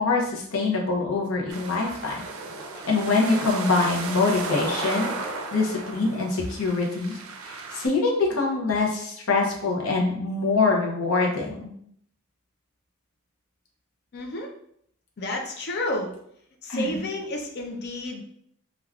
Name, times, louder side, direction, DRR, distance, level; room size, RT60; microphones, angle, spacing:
voice 1, 0.0-2.2 2.9-7.2 7.4-11.7 16.7-17.0, left 3 dB, 90° left, -1 dB, 0.7 m, -24 dB
sound 1, 1.5-7.9, right 3 dB, 75° right, 0.4 m, -34 dB
voice 2, 14.1-14.5 15.2-16.1 16.6-18.2, left 1 dB, 50° left, 2 dB, 0.5 m, -30 dB
3.3 x 2.3 x 2.3 m, 0.68 s
head